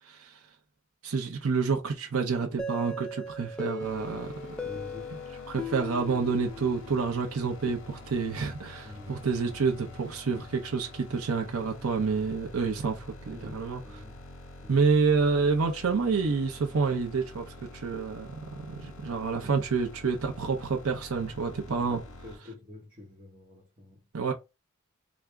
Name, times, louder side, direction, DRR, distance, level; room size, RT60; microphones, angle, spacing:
voice 1, 1.0-4.3 5.1-5.2 5.5-14.0 14.7-22.0 24.1-24.3, right 4 dB, 80° right, 0.6 m, -28 dB
sound 1, 2.6-7.3, left 1 dB, 5° left, 0.4 m, -38 dB
sound 2, 3.8-22.4, left 2 dB, 65° left, 0.8 m, -47 dB
voice 2, 4.6-5.1 8.8-9.2 13.3-14.2 14.6-14.9 21.8-24.0, left 2 dB, 25° right, 0.9 m, -47 dB
3.4 x 2.0 x 3.5 m
head